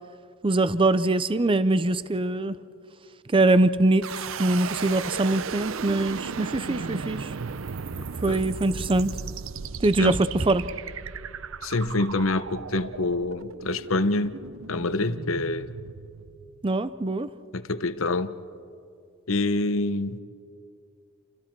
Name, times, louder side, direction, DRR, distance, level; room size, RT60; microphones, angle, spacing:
voice 1, 0.4-2.5 3.3-4.1 4.4-7.3 8.2-9.1 9.8-10.6 16.6-17.3, right 2 dB, 25° right, 14 dB, 0.5 m, -23 dB
sound 1, 4.0-17.0, right 5 dB, 70° right, 0.6 m, -36 dB
voice 2, 11.6-14.4 14.7-15.7 17.5-18.4 19.3-20.2, left 2 dB, 70° left, 12 dB, 0.9 m, -26 dB
30.0 x 26.0 x 4.6 m, 2.4 s
head